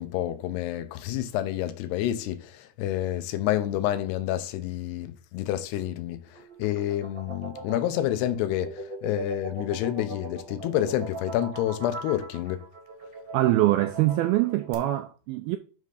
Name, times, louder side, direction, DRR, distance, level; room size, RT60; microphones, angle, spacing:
voice 1, 0.0-12.6, left 12 dB, 80° left, 2.7 m, -29 dB
sound 1, 6.3-14.7, right 2 dB, 45° right, 1.1 m, -40 dB
voice 2, 13.3-15.6, right 15 dB, 85° right, 2.2 m, -23 dB
9.4 x 3.7 x 6.5 m
omnidirectional pair, 4.9 m